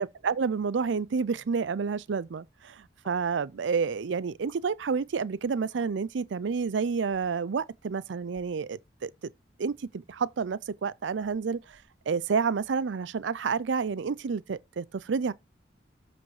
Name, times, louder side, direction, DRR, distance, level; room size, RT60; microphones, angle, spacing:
voice 1, 0.0-9.1 9.6-11.8 12.1-15.3, right 5 dB, 75° right, 0.5 m, -29 dB
sound 1, 4.5-4.6 5.6-5.9 7.0-7.4 8.2-8.5 10.2-10.3 11.2-12.3, left 1 dB, 25° left, 3.0 m, -60 dB
13.5 x 5.3 x 4.8 m
head